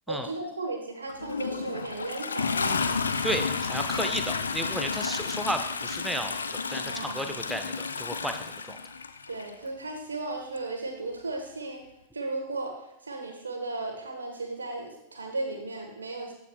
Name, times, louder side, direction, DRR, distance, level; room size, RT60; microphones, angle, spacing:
voice 1, 0.1-2.9 6.8-7.3 9.3-11.8 12.1-12.7 13.0-16.3, right 2 dB, 75° right, 3 dB, 1.2 m, -35 dB
Toilet flush, 1.1-9.5 10.6-10.7, left 5 dB, 75° left, 0.4 m, -31 dB
voice 2, 3.2-8.4 8.7-8.8, right 1 dB, ahead, 6 dB, 0.6 m, -33 dB
13.5 x 4.8 x 2.3 m, 0.84 s
figure-of-eight pair, 90°, 0 cm